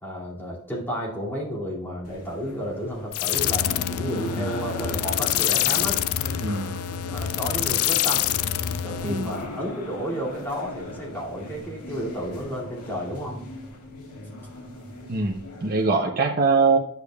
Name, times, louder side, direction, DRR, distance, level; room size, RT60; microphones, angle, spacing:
voice 1, 0.0-6.0 7.1-8.3 8.8-13.4, equal, 10° left, -5 dB, 2.4 m, -32 dB
sound 1, 2.0-15.9, left 1 dB, 90° left, 2.0 m, -38 dB
sound 2, 3.1-9.4, left 13 dB, 70° left, 0.3 m, -26 dB
voice 2, 6.4-6.7 9.0-9.3 15.1-16.8, right 4 dB, 40° right, 1 dB, 0.7 m, -23 dB
10.5 x 6.7 x 2.3 m, 0.80 s
head